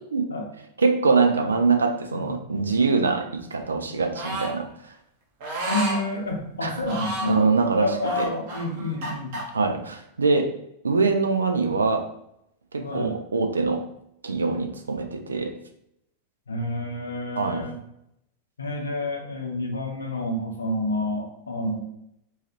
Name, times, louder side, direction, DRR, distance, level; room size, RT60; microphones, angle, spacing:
voice 1, 0.8-4.7 6.6-6.8 7.3-7.9 8.2-8.3 9.5-10.5 10.8-12.1 12.7-13.9 14.2-15.5 17.4-17.7, right 4 dB, 75° right, 6 dB, 0.3 m, -23 dB
voice 2, 2.1-2.4 5.7-7.4 7.8-9.4 12.8-13.1 16.5-17.8 18.6-21.8, left 1 dB, 75° left, 2 dB, 0.6 m, -29 dB
sound 1, 4.1-4.5 5.4-6.0 6.8-7.4 8.0-9.4, right 1 dB, 50° right, 0.7 m, -31 dB
3.1 x 2.3 x 2.9 m, 0.78 s
figure-of-eight pair, 90°, 0 cm